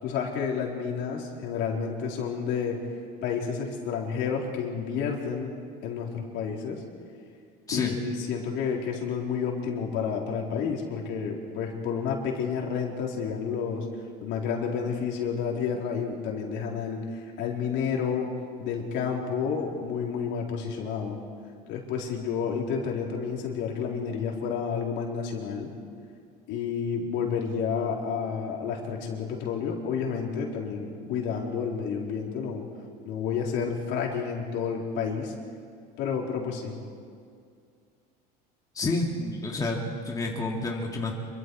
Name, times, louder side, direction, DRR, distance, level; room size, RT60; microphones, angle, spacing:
voice 1, 0.0-2.8 3.2-5.5 5.8-6.8 7.7-13.9 14.2-18.3 18.6-21.2 21.7-25.7 26.5-32.6 33.1-35.3 36.0-36.8, left 6 dB, 65° left, -1 dB, 3.9 m, -30 dB
voice 2, 38.7-41.1, left 2 dB, 15° left, -1 dB, 2.4 m, -29 dB
26.5 x 23.5 x 4.7 m, 2.3 s
supercardioid pair, 125°, 20 cm